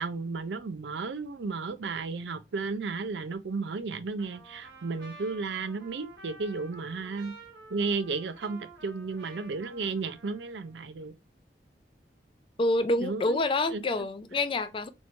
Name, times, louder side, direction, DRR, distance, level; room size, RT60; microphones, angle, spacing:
voice 1, 0.0-7.4 7.7-11.1 13.0-13.4 13.7-14.1, right 4 dB, 85° right, 0.5 m, -33 dB
Trumpet, 4.2-10.8, right 3 dB, 70° right, 1.3 m, -51 dB
voice 2, 12.6-14.9, left 2 dB, 30° left, 0.4 m, -27 dB
3.0 x 2.6 x 4.3 m
head